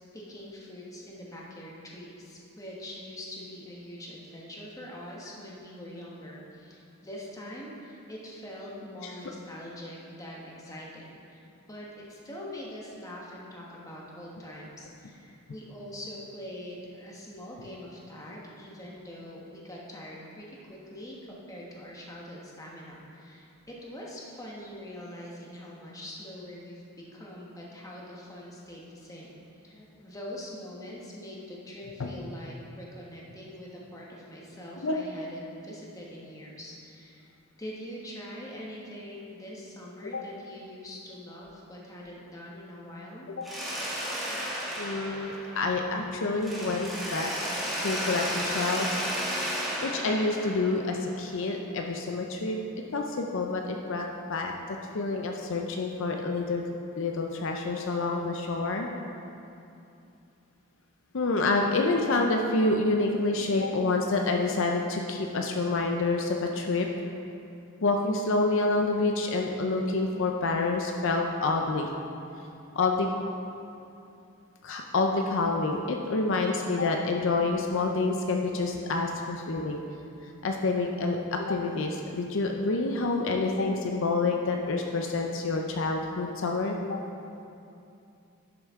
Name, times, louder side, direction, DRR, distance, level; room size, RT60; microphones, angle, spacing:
voice 1, 0.1-29.3 29.6-37.3 37.6-43.3, left 1 dB, 15° left, -4 dB, 1.3 m, -43 dB
Mechanisms, 43.4-46.0 46.4-51.3, equal, ahead, 1.7 m, -33 dB
voice 2, 44.8-47.3 47.8-49.0 49.8-52.6 52.9-54.5 54.9-56.6 57.0-58.9 61.1-66.9 67.8-71.9 72.7-73.1 74.6-79.8 80.4-87.0, left 3 dB, 60° left, 2 dB, 0.6 m, -28 dB
11.0 x 6.6 x 3.6 m, 2.7 s
head